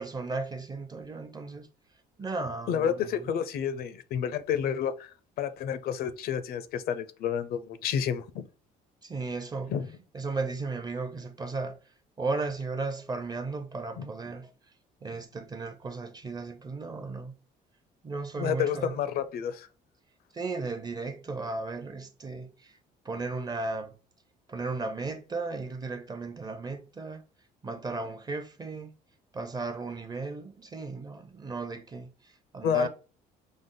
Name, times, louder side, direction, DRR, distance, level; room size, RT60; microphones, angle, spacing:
voice 1, 0.0-1.7 2.2-3.3 9.0-9.7 10.1-11.8 12.2-14.5 15.0-17.3 18.0-18.9 20.3-22.7 23.0-23.9 24.5-27.2 27.6-28.9 29.3-32.1 32.5-32.9, right 3 dB, 25° right, 0.5 m, -35 dB
voice 2, 2.7-8.4 9.7-9.9 14.0-14.1 18.4-19.7 32.6-32.9, left 8 dB, 65° left, 0.5 m, -30 dB
5.1 x 2.0 x 3.7 m
cardioid pair, 110°, 17 cm